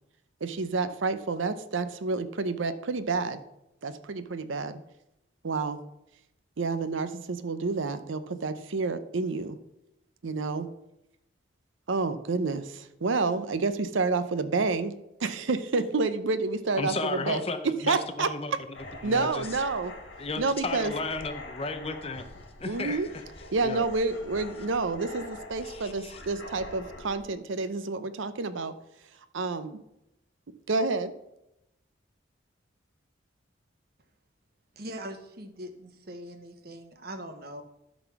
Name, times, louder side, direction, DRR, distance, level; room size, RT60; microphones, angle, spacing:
voice 1, 0.4-3.4 3.8-4.8 5.4-5.8 6.6-9.6 10.2-10.7 11.9-14.9 15.2-17.4 17.9-18.3 19.0-19.9 20.4-20.9 22.7-23.1 23.5-28.7 29.3-29.8 30.7-31.1, right 3 dB, 80° right, 11 dB, 0.7 m, -29 dB
voice 2, 16.8-18.8 19.0-19.5 20.2-22.3 22.6-23.1 23.6-23.8 25.6-26.2, left 3 dB, 30° left, 9 dB, 0.6 m, -34 dB
sound 1, 18.7-27.2, left 2 dB, 70° left, 2.0 m, -45 dB
voice 3, 34.8-37.6, right 1 dB, 50° right, 7 dB, 1.0 m, -41 dB
12.5 x 4.1 x 5.9 m, 0.86 s
head